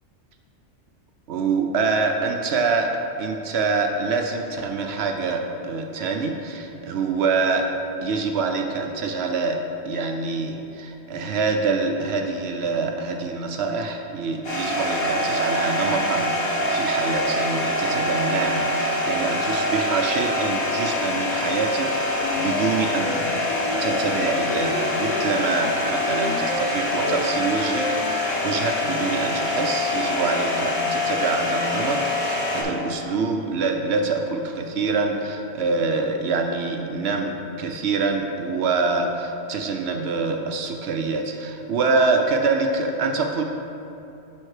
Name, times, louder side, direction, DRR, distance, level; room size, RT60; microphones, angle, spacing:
voice 1, 1.3-2.9 3.2-7.7 8.0-9.6 9.9-23.3 23.6-43.4, right 4 dB, 65° right, 3 dB, 0.8 m, -25 dB
sound 1, 14.4-32.6, left 1 dB, 55° left, 1.9 m, -25 dB
sound 2, 22.2-28.3, equal, 90° left, 1.2 m, -31 dB
10.5 x 3.6 x 4.8 m, 2.8 s
omnidirectional pair, 1.2 m